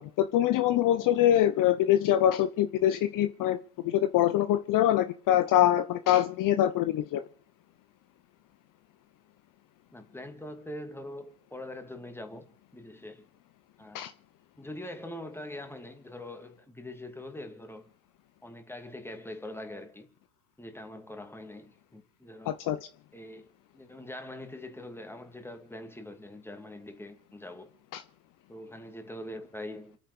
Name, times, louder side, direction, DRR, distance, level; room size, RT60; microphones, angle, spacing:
voice 1, 0.0-3.6 3.8-7.2 13.9-14.1 22.5-22.8 27.9-28.0, left 12 dB, 50° left, 0.9 m, -24 dB
voice 2, 9.9-13.3 13.8-14.1 14.6-17.9 18.4-20.1 20.6-22.6 23.1-23.5 23.7-27.7 28.5-30.0, left 1 dB, 5° left, 2.6 m, -43 dB
27.5 x 9.3 x 5.0 m
hypercardioid pair, 90°, 42 cm